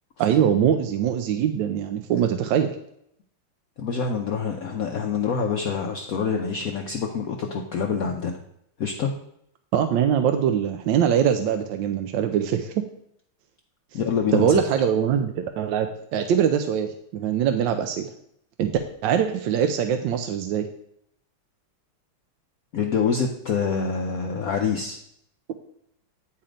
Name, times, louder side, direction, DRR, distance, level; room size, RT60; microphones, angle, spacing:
voice 1, 0.2-2.8 9.7-12.7 14.3-18.1 18.6-20.7, right 8 dB, 75° right, 7 dB, 1.1 m, -23 dB
voice 2, 3.8-8.4 8.8-9.1 13.9-14.6 22.7-25.0, left 6 dB, 90° left, 2 dB, 0.7 m, -26 dB
8.9 x 4.2 x 4.9 m, 0.73 s
omnidirectional pair, 2.3 m